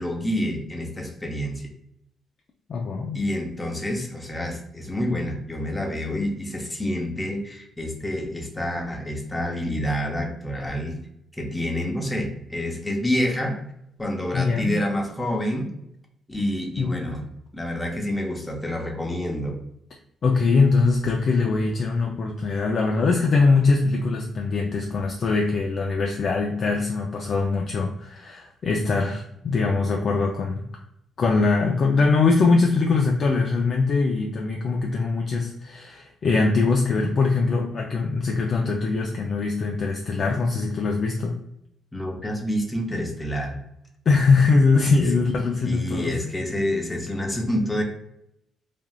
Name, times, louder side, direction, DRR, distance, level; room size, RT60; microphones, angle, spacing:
voice 1, 0.0-1.6 3.1-11.0 11.3-13.6 14.0-15.7 16.3-17.2 17.5-19.6 41.9-43.6 45.6-47.8, left 1 dB, 15° left, 2 dB, 0.7 m, -28 dB
voice 2, 2.7-3.2 14.3-14.8 16.8-17.0 20.2-30.6 31.2-41.4 44.1-46.2, left 4 dB, 50° left, 1 dB, 0.4 m, -22 dB
3.3 x 2.4 x 2.3 m, 0.78 s
cardioid pair, 90°, 0 cm